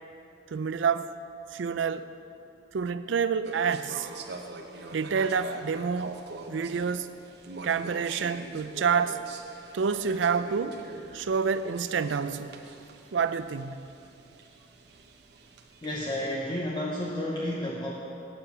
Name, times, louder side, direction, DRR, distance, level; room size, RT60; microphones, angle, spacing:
voice 1, 0.5-1.1 1.5-2.1 2.7-4.1 4.9-6.2 6.5-7.1 7.6-9.2 9.7-10.8 11.1-12.6 13.1-13.9, right 6 dB, 85° right, 13 dB, 0.4 m, -28 dB
sound 1, 3.4-16.3, right 3 dB, 60° right, 0.8 m, -44 dB
voice 2, 15.8-17.9, left 1 dB, 25° left, -3 dB, 0.8 m, -31 dB
8.6 x 7.3 x 7.9 m, 2.7 s
head